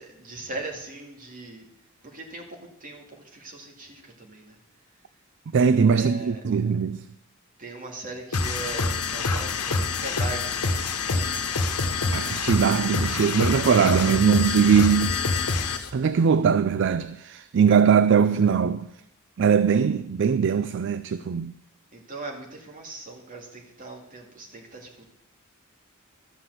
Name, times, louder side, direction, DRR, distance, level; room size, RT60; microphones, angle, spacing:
voice 1, 0.0-1.7 2.0-3.1 3.3-4.6 5.9-6.4 7.6-11.4 21.9-25.1, right 2 dB, 40° right, 2.3 m, -39 dB
voice 2, 5.5-7.1 12.1-15.1 15.9-18.9 19.4-21.5, right 6 dB, 55° right, 0.4 m, -21 dB
sound 1, 8.3-15.9, left 4 dB, 85° left, 1.2 m, -26 dB
13.0 x 5.9 x 7.9 m
head